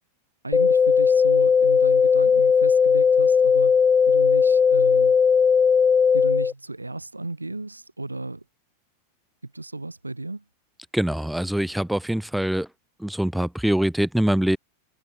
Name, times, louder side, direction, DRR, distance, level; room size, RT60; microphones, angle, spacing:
voice 1, 0.4-5.2 6.1-8.4 9.4-10.4, right 2 dB, 85° right, 4.7 m, -34 dB
sound 1, 0.5-6.5, left 6 dB, 20° left, 2.6 m, -18 dB
voice 2, 10.9-12.7 13.0-14.6, right 1 dB, ahead, 2.0 m, -23 dB
figure-of-eight pair, 90°, 0 cm